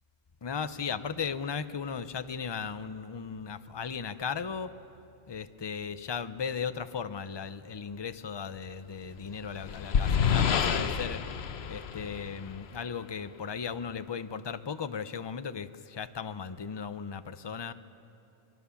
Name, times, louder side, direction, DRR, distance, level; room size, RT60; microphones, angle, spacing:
voice 1, 0.4-4.7 5.3-11.2 11.7-17.7, left 6 dB, 30° left, 12 dB, 0.5 m, -36 dB
sound 1, 9.1-12.8, left 7 dB, 60° left, 1.0 m, -29 dB
26.5 x 22.0 x 7.1 m, 2.9 s
omnidirectional pair, 1.3 m